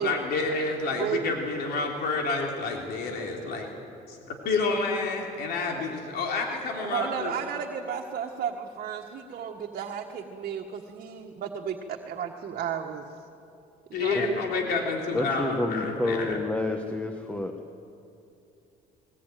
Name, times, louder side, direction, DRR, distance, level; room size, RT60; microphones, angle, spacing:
voice 1, 0.0-3.7 4.1-4.2 4.4-7.3 13.9-16.4, left 3 dB, 75° left, 1 dB, 3.4 m, -29 dB
voice 2, 0.9-1.3 6.8-13.0 13.9-14.3, right 8 dB, 55° right, 1 dB, 1.6 m, -33 dB
voice 3, 15.1-17.5, left 2 dB, 10° left, 5 dB, 1.3 m, -29 dB
20.5 x 20.0 x 9.3 m, 2.7 s
cardioid pair, 110°, 17 cm